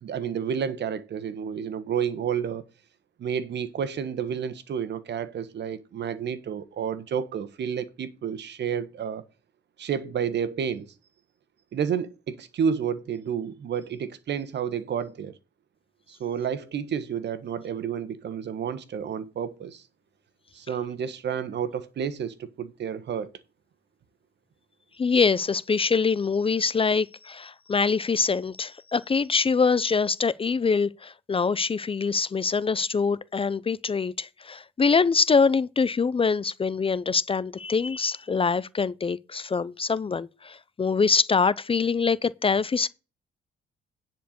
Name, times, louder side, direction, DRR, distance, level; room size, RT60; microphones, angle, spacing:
voice 1, 0.0-2.6 3.2-9.2 9.8-10.9 11.7-15.4 16.1-19.8 20.5-23.3, right 7 dB, 60° right, 1.3 m, -30 dB
voice 2, 25.0-42.9, left 5 dB, 25° left, 0.5 m, -24 dB
10.0 x 4.5 x 6.6 m
cardioid pair, 90°, 20 cm